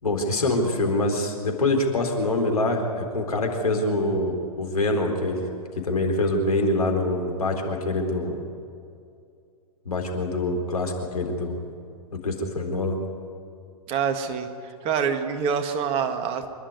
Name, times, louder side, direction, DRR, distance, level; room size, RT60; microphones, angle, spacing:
voice 1, 0.0-5.4 5.8-8.4 9.9-11.6 12.2-13.0, left 2 dB, 75° left, 3 dB, 4.0 m, -25 dB
voice 2, 13.9-16.5, right 6 dB, 30° right, 7 dB, 1.7 m, -26 dB
26.5 x 11.5 x 9.7 m, 2.4 s
figure-of-eight pair, 110°, 19 cm